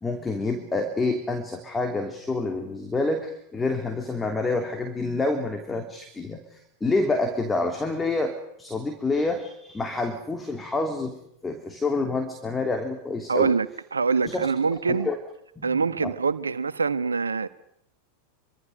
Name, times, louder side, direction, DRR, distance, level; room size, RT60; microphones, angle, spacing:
voice 1, 0.0-11.2 11.4-13.5 14.2-14.8 15.0-15.1 15.6-16.1, left 3 dB, 10° left, 3.0 m, -28 dB
voice 2, 13.3-15.1 15.6-17.5, right 5 dB, 75° right, 1.4 m, -24 dB
27.5 x 24.5 x 6.6 m
figure-of-eight pair, 90°, 0 cm